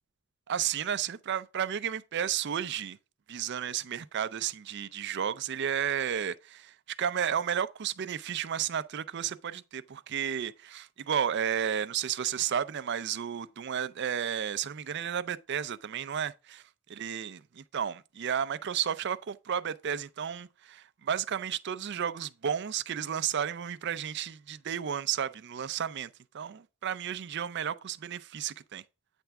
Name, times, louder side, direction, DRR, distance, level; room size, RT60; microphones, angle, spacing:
voice 1, 0.5-3.0 3.3-16.6 16.9-26.1 26.3-28.8, right 8 dB, 50° right, 0.4 m, -32 dB
9.0 x 3.4 x 5.9 m
head